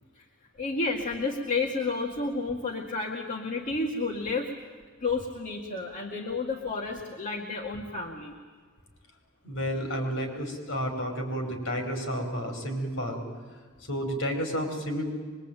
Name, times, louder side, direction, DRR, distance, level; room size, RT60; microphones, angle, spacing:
voice 1, 0.6-4.5 5.0-8.3, left 3 dB, 40° left, -1 dB, 2.1 m, -31 dB
voice 2, 9.4-13.2 13.9-15.1, equal, 75° left, 4 dB, 5.5 m, -31 dB
24.0 x 22.5 x 9.1 m, 1.5 s
head